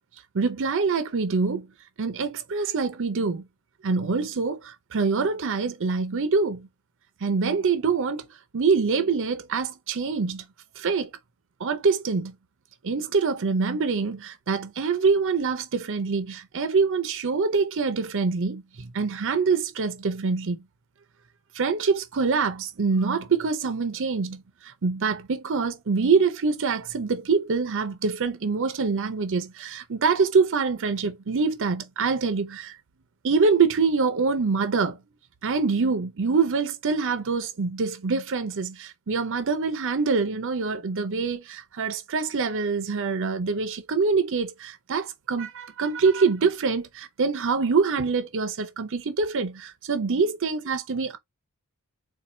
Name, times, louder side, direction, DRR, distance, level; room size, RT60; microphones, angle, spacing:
voice 1, 0.3-1.7 2.0-3.4 3.8-6.7 7.2-8.3 8.5-10.4 10.8-11.1 11.6-12.3 12.8-20.6 21.5-32.7 33.2-35.0 35.4-51.2, right 4 dB, 60° right, 0.6 m, -25 dB
4.3 x 2.4 x 2.6 m
head